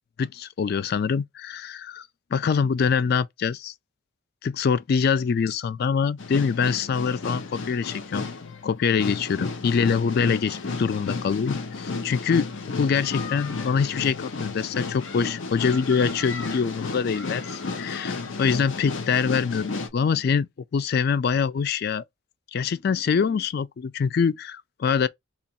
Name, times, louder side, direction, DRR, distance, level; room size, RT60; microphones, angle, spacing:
voice 1, 0.2-3.7 4.4-8.3 8.6-22.0 22.5-25.1, left 6 dB, 50° left, 0.3 m, -24 dB
sound 1, 6.2-19.9, left 4 dB, 65° left, 0.7 m, -33 dB
2.9 x 2.5 x 4.1 m
head